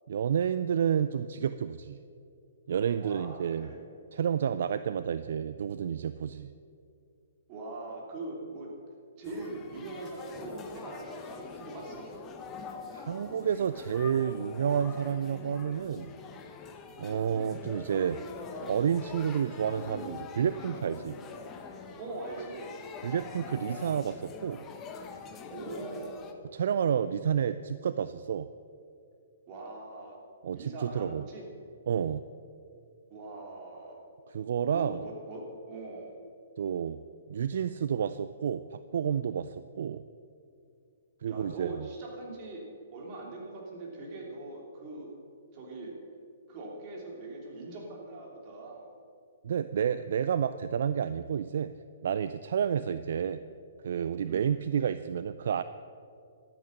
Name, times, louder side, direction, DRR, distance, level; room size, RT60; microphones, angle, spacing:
voice 1, 0.1-2.0 2.7-3.7 4.1-6.5 12.9-16.1 17.0-18.2 18.5-21.2 23.0-24.6 26.5-28.5 30.4-31.2 31.9-32.2 34.3-35.0 36.6-37.0 37.3-40.0 41.2-41.9 49.4-51.7 52.0-53.4 53.8-55.6, right 8 dB, 65° right, 13 dB, 0.4 m, -30 dB
voice 2, 3.0-3.8 7.5-8.7 9.2-12.1 22.0-22.7 25.5-26.2 29.5-30.2 30.5-31.5 33.1-34.0 34.7-36.1 41.3-42.6 42.9-45.1 45.5-46.0 46.5-48.9 54.2-54.4, right 2 dB, 35° right, -1 dB, 3.2 m, -41 dB
sound 1, 9.2-26.3, left 5 dB, 20° left, 1.1 m, -44 dB
12.0 x 9.0 x 6.5 m, 2.4 s
hypercardioid pair, 130°, 0 cm